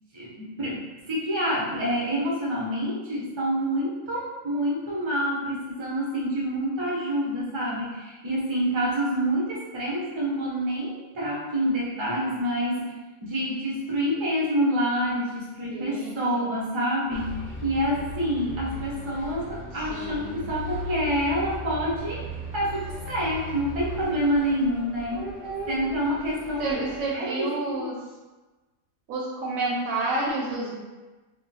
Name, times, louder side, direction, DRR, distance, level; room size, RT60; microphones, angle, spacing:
voice 1, 0.1-12.9 13.2-22.3 22.5-25.2 25.7-26.8 27.1-27.9, equal, 35° right, -5 dB, 0.4 m, -27 dB
voice 2, 15.7-16.6 19.9-20.4 25.1-25.9 26.6-28.0 29.1-30.7, right 2 dB, 80° right, -4 dB, 1.0 m, -30 dB
Bus, 17.1-27.1, left 2 dB, 35° left, 0.6 m, -38 dB
2.4 x 2.2 x 3.9 m, 1.2 s
omnidirectional pair, 1.5 m